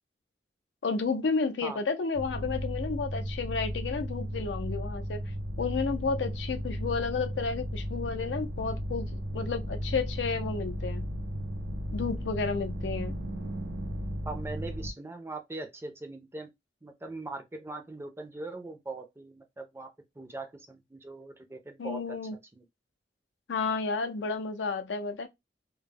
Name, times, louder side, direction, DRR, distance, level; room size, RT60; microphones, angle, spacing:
voice 1, 0.8-5.2 5.6-11.1 11.9-13.2 21.8-22.3 23.5-25.3, left 4 dB, 85° left, 0.5 m, -31 dB
sound 1, 2.1-14.9, equal, 90° right, 0.5 m, -35 dB
voice 2, 14.2-16.5 16.8-19.9 20.2-22.0 22.5-22.7, right 3 dB, 15° right, 0.4 m, -40 dB
2.2 x 2.0 x 3.3 m
head